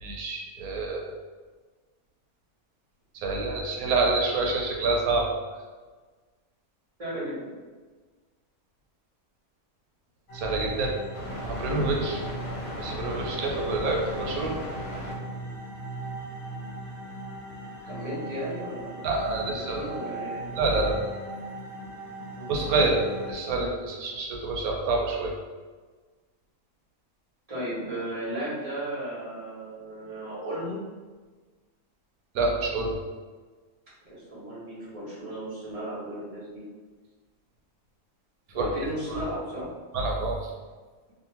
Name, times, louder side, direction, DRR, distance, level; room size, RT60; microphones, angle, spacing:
voice 1, 0.0-1.1 3.2-5.3 10.3-10.9 11.4-12.2 12.8-14.5 19.0-19.8 20.6-21.0 22.5-25.3 32.3-32.9 38.6-38.7 39.9-40.4, right 3 dB, 85° right, 0 dB, 1.1 m, -27 dB
voice 2, 7.0-7.5 14.4-14.5 17.8-20.9 22.3-22.5 27.5-30.8 34.1-36.6 38.5-39.7, right 1 dB, 30° right, -9 dB, 0.9 m, -35 dB
sound 1, 10.3-23.3, right 1 dB, 55° left, 0.8 m, -37 dB
2.7 x 2.4 x 2.9 m, 1.4 s
omnidirectional pair, 1.5 m